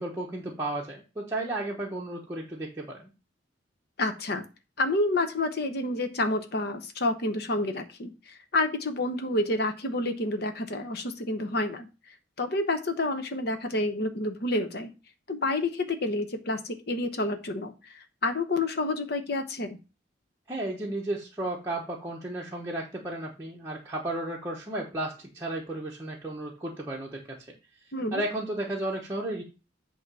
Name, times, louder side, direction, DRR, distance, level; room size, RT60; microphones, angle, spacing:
voice 1, 0.0-3.1 20.5-27.2 28.1-29.4, right 1 dB, 15° right, -4 dB, 1.0 m, -33 dB
voice 2, 4.0-4.4 4.8-8.1 8.5-11.9 12.4-14.9 15.3-19.8 27.9-28.2, left 2 dB, 55° left, 8 dB, 1.0 m, -29 dB
8.4 x 3.0 x 6.1 m, 0.31 s
head